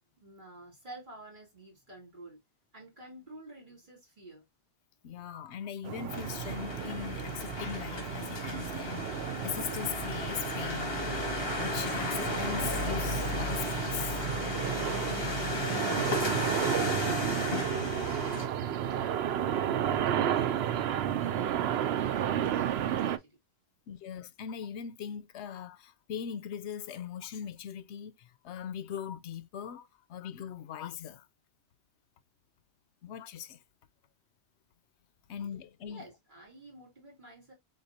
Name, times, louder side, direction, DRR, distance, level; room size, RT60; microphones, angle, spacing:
voice 1, 0.0-2.4 2.7-4.4 19.0-21.2 21.7-23.4 35.9-37.5, right 2 dB, 50° right, 2.7 m, -50 dB
voice 2, 5.0-11.0 11.3-14.3 23.9-31.3 33.0-33.6 35.3-36.0, left 9 dB, 85° left, 0.9 m, -40 dB
sound 1, 5.8-23.2, right 10 dB, 75° right, 0.8 m, -32 dB
sound 2, 6.1-18.5, left 3 dB, 60° left, 2.0 m, -35 dB
4.4 x 3.9 x 2.7 m
omnidirectional pair, 1.1 m